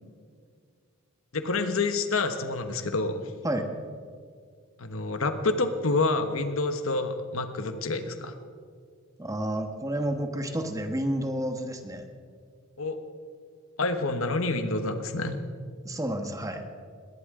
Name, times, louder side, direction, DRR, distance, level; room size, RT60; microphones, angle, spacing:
voice 1, 1.3-3.3 4.8-8.3 12.8-13.0 13.8-15.4, left 3 dB, 75° left, 8 dB, 1.2 m, -28 dB
voice 2, 9.2-12.1 15.8-16.6, right 1 dB, 15° right, 6 dB, 1.3 m, -30 dB
20.0 x 17.5 x 3.8 m, 2.1 s
head